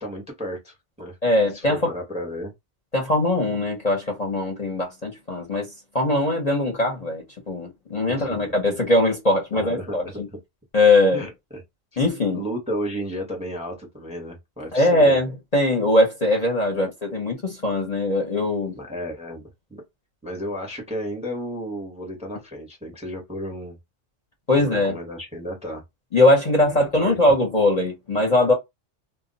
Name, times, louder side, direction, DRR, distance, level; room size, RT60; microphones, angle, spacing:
voice 1, 0.0-1.2 1.5-2.5 8.1-8.6 9.5-10.4 11.1-11.6 12.3-15.2 18.8-19.4 19.7-19.8 20.2-23.8 24.5-25.8 26.6-27.3, equal, 5° right, 0.7 m, -33 dB
voice 2, 1.2-1.8 2.9-5.7 5.9-10.3 10.7-11.3 12.0-12.4 14.7-18.7 24.5-24.9 26.1-28.5, left 1 dB, 40° left, 0.8 m, -21 dB
2.2 x 2.1 x 3.8 m
omnidirectional pair, 1.2 m